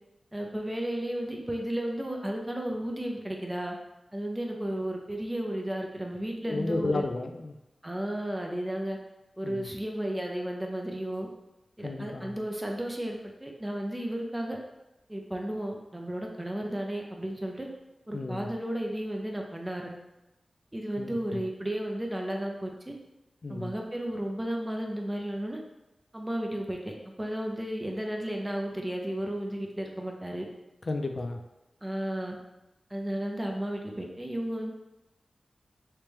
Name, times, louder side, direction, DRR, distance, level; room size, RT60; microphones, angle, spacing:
voice 1, 0.3-3.8 4.1-7.0 7.8-9.0 9.4-11.3 11.8-14.6 15.1-17.7 18.1-20.0 20.7-22.9 23.5-25.6 26.1-30.5 31.8-32.4 32.9-34.7, right 1 dB, 15° right, 1 dB, 0.6 m, -33 dB
voice 2, 6.5-7.6 9.4-9.7 11.8-12.4 18.1-18.5 21.0-21.4 23.4-23.7 30.9-31.4, left 2 dB, 60° left, 5 dB, 0.4 m, -33 dB
3.3 x 3.0 x 3.4 m, 0.97 s
wide cardioid pair, 75°, 0 cm